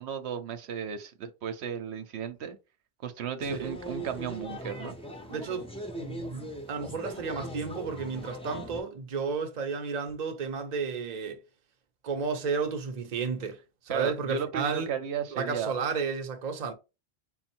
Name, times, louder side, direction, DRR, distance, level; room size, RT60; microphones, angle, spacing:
voice 1, 0.0-2.6 3.0-5.0 13.9-15.7, right 8 dB, 80° right, 0.9 m, -34 dB
sound 1, 3.4-8.8, equal, 10° left, 0.4 m, -40 dB
voice 2, 5.3-5.7 6.0-11.4 12.0-13.6 13.9-14.9 15.3-16.7, right 5 dB, 45° right, 0.7 m, -32 dB
3.9 x 2.0 x 4.3 m
omnidirectional pair, 1.1 m